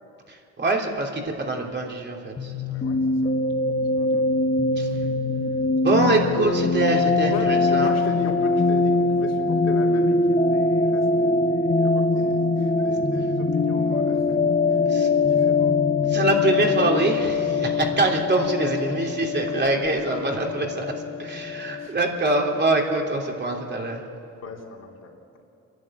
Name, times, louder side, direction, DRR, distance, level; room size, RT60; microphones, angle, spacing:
voice 1, 0.3-2.5 4.8-4.9 5.8-7.9 14.9-15.1 16.1-20.9 21.2-24.0, right 2 dB, 35° right, 1 dB, 3.1 m, -24 dB
sound 1, 2.4-21.9, left 3 dB, 30° left, 1.5 m, -23 dB
voice 2, 2.7-3.3 3.9-4.3 4.7-5.1 5.8-6.2 7.3-14.4 14.7-15.9 21.8-22.0 24.4-25.1, left 4 dB, 60° left, 0 dB, 3.4 m, -37 dB
27.5 x 11.5 x 9.0 m, 2.5 s
cardioid pair, 90°, 30 cm